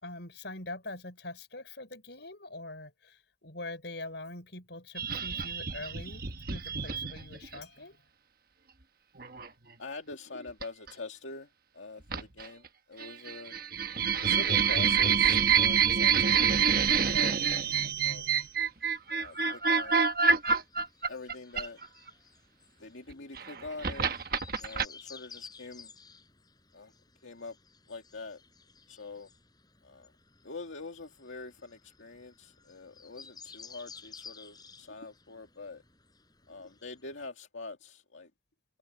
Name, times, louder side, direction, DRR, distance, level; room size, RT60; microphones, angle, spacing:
voice 1, 0.0-8.0, left 2 dB, 65° left, 6.0 m, -43 dB
sound 1, 5.0-7.6 9.2-9.5 10.6-10.9 12.1-12.7 13.0-22.1 23.1-24.9, right 6 dB, 50° right, 1.2 m, -27 dB
voice 2, 9.8-11.5 11.7-12.6 12.9-13.5 14.2-16.6 17.1-18.3 19.2-19.9 21.1-21.8 22.8-24.2 24.6-25.9 26.7-26.9 27.2-27.6 27.9-28.4 28.9-29.3 29.8-30.1 30.4-35.8 36.5-38.3, left 3 dB, 85° left, 2.2 m, -44 dB
sound 2, 18.1-37.3, left 5 dB, 20° left, 6.3 m, -55 dB
head